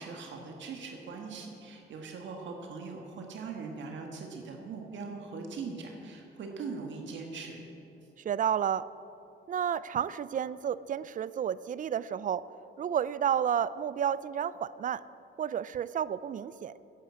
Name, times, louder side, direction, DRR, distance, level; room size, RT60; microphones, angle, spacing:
voice 1, 0.0-7.7, right 4 dB, 70° right, 2 dB, 1.6 m, -41 dB
voice 2, 8.2-8.9 9.5-12.5 12.8-15.0 15.4-16.9, right 9 dB, 40° right, 17 dB, 0.4 m, -31 dB
10.5 x 8.5 x 8.3 m, 2.9 s
cardioid pair, 90°, 20 cm